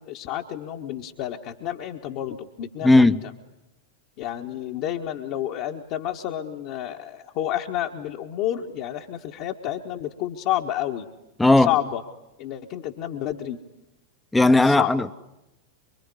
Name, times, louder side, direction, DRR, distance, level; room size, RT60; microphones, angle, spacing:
voice 1, 0.0-3.2 4.2-11.1 11.6-12.0 12.4-13.6 14.6-15.1, left 12 dB, 45° left, 1.4 m, -30 dB
voice 2, 2.8-3.2 11.4-11.7 14.3-15.2, left 2 dB, 5° left, 0.9 m, -16 dB
25.5 x 24.0 x 9.8 m
figure-of-eight pair, 90°, 0 cm